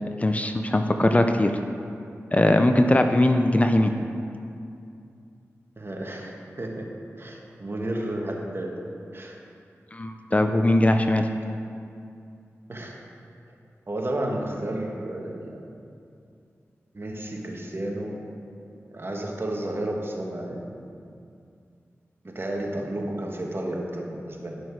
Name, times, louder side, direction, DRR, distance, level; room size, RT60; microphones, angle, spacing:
voice 1, 0.2-1.5 2.3-3.9 9.9-11.3, left 1 dB, 25° left, 6 dB, 0.6 m, -20 dB
voice 2, 5.8-6.9 7.2-8.7 9.1-9.4 12.7-12.9 13.9-15.6 16.9-18.2 18.9-20.7 22.2-24.6, right 1 dB, 45° right, 0 dB, 1.6 m, -32 dB
11.0 x 6.2 x 4.6 m, 2.5 s
cardioid pair, 40°, 6 cm